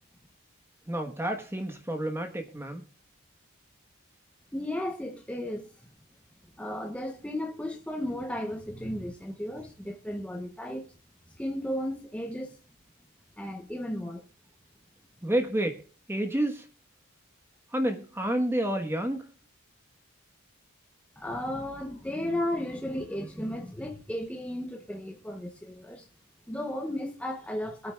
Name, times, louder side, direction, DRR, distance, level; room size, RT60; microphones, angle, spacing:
voice 1, 0.9-2.8 15.2-15.8 16.1-16.7 17.7-19.2, right 1 dB, 10° right, 1.2 m, -29 dB
voice 2, 4.5-5.9 6.6-10.9 11.4-12.6 13.4-14.3 21.2-26.1 26.5-27.9, left 1 dB, 5° left, 0.8 m, -34 dB
22.0 x 9.0 x 2.3 m
head